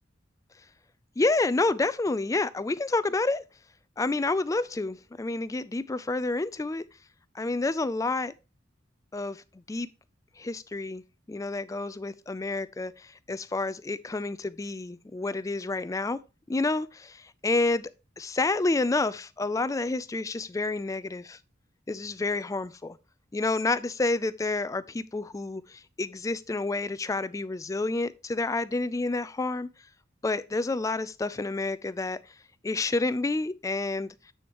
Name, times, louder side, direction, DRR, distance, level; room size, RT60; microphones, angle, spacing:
voice 1, 1.2-3.4 4.0-6.8 7.3-8.3 9.1-9.4 9.7-9.9 10.4-11.0 11.3-16.2 16.5-17.9 18.2-21.4 21.9-23.0 23.3-29.7 30.2-32.2 32.6-34.1, left 3 dB, 15° left, 0.3 m, -29 dB
7.8 x 6.4 x 2.9 m
head